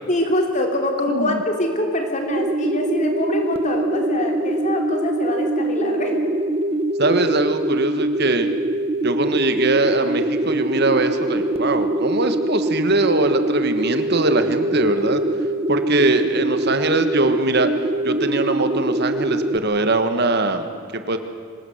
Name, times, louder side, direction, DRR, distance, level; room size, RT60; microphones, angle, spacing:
voice 1, 0.1-6.2, left 1 dB, 35° left, 2 dB, 3.4 m, -24 dB
voice 2, 1.1-1.4 7.0-8.5 9.0-15.2 15.7-17.7 18.0-20.7 20.9-21.2, right 2 dB, 50° right, 8 dB, 1.5 m, -21 dB
sound 1, 2.3-19.6, right 1 dB, 30° right, 1.0 m, -23 dB
25.5 x 19.0 x 8.1 m, 2.2 s
head